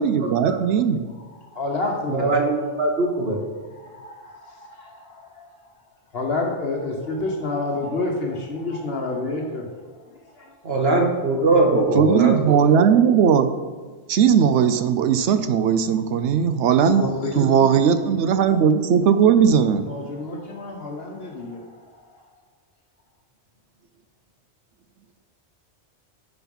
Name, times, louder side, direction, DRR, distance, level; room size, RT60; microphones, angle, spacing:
voice 1, 0.0-1.1 11.7-13.5 14.1-17.0 17.4-19.9, right 7 dB, 80° right, 10 dB, 0.9 m, -18 dB
voice 2, 1.1-2.8 3.1-3.3 3.6-5.6 6.1-9.7 10.0-10.5 16.8-17.9 18.5-18.6 19.3-19.4 19.8-22.2, left 2 dB, 60° left, 1 dB, 1.2 m, -30 dB
voice 3, 2.1-3.4 10.6-12.3, right 2 dB, 60° right, 1 dB, 1.5 m, -20 dB
10.0 x 4.1 x 5.4 m, 1.4 s
omnidirectional pair, 1.2 m